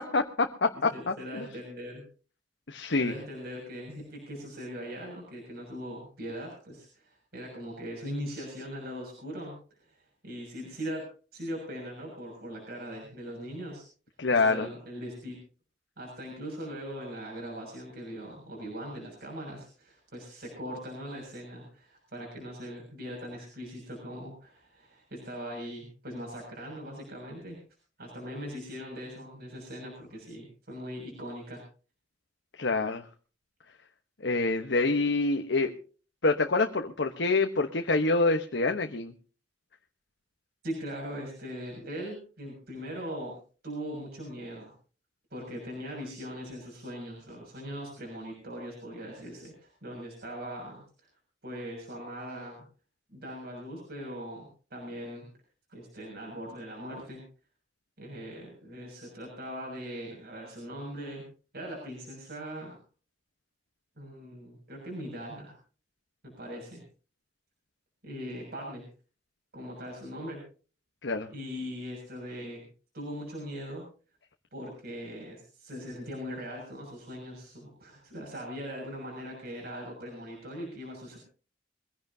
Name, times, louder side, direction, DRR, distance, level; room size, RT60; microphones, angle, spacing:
voice 1, 0.0-1.5 2.7-3.1 14.2-14.7 32.6-33.1 34.2-35.7 36.2-39.1 71.0-71.3, left 3 dB, 70° left, 5 dB, 1.1 m, -26 dB
voice 2, 0.9-2.1 3.0-9.6 9.9-13.8 14.3-15.3 16.0-27.6 28.0-31.6 40.6-43.4 43.6-44.7 45.3-50.8 51.4-52.7 53.1-55.3 55.7-57.2 58.0-61.3 61.5-62.8 64.0-65.6 66.4-66.8 68.0-68.8 69.5-70.4 71.3-72.7 72.9-73.8 74.5-81.2, equal, 60° right, -1 dB, 6.6 m, -40 dB
23.5 x 16.0 x 2.8 m, 0.38 s
head